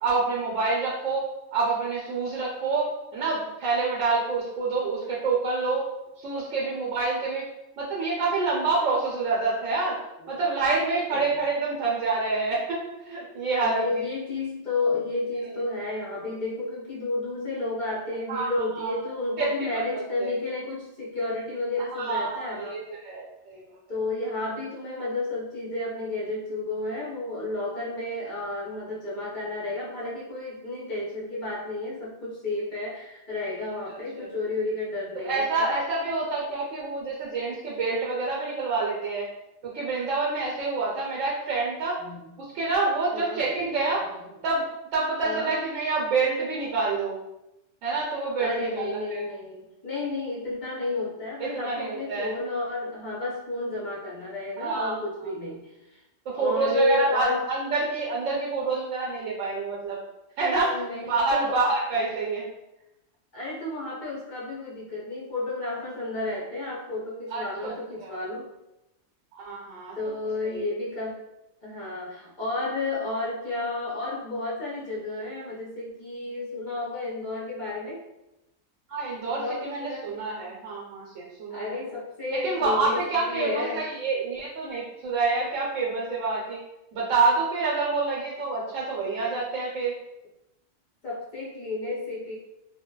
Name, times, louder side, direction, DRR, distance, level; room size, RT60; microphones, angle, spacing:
voice 1, 0.0-1.2 1.5-5.9 6.2-7.5 7.8-10.0 10.3-13.8 18.3-18.9 19.4-20.3 21.9-23.6 33.9-34.0 35.2-39.3 39.6-42.0 42.5-44.1 44.4-44.6 44.9-47.2 47.8-49.2 51.4-52.3 54.6-55.0 56.3-60.0 60.4-62.5 67.3-67.7 68.0-68.1 69.3-69.9 70.4-70.6 78.9-81.8 82.4-86.6 86.9-89.9, right 3 dB, 75° right, -4 dB, 0.9 m, -27 dB
voice 2, 10.2-10.5 11.1-11.2 13.6-22.8 23.9-35.7 42.0-42.5 43.1-43.5 44.0-44.3 45.2-45.5 48.4-56.0 56.3-57.5 60.7-61.6 63.3-68.5 69.9-71.2 71.6-78.1 79.3-80.1 80.4-80.5 81.5-83.9 91.0-92.3, left 2 dB, 50° left, -6 dB, 0.6 m, -32 dB
2.8 x 2.1 x 2.2 m, 0.92 s
omnidirectional pair, 1.3 m